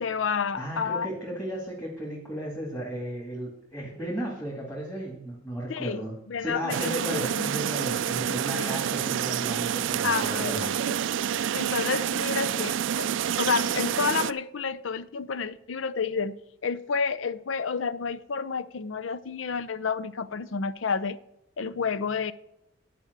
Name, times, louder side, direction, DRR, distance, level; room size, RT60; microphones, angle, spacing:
voice 1, 0.0-1.1 5.7-7.6 8.5-8.8 10.0-11.0 11.5-13.1 13.4-16.3 16.6-21.2 21.6-22.3, left 5 dB, 75° left, 0.6 m, -30 dB
voice 2, 0.6-10.7, right 1 dB, 15° left, 2.3 m, -35 dB
sound 1, 6.7-14.3, right 9 dB, 70° right, 0.3 m, -28 dB
11.0 x 5.2 x 8.0 m
head